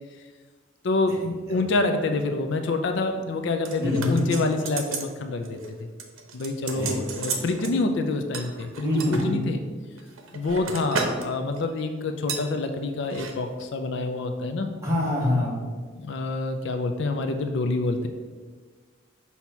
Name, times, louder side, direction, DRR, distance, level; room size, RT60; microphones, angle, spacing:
voice 1, 0.8-5.9 6.3-9.6 10.3-14.7 16.0-18.1, left 3 dB, 60° left, 6 dB, 0.4 m, -27 dB
sound 1, 3.7-5.1 5.4-5.7 6.0-7.7 8.3-9.3 9.9-11.3 11.6-11.8 12.3-12.5 13.0-13.3 13.6-13.7, right 4 dB, 85° right, 0.8 m, -33 dB
voice 2, 3.8-4.2 6.7-7.0 8.8-9.4 14.8-15.6, left 1 dB, 15° right, -5 dB, 1.5 m, -25 dB
6.0 x 2.8 x 5.5 m, 1.5 s
head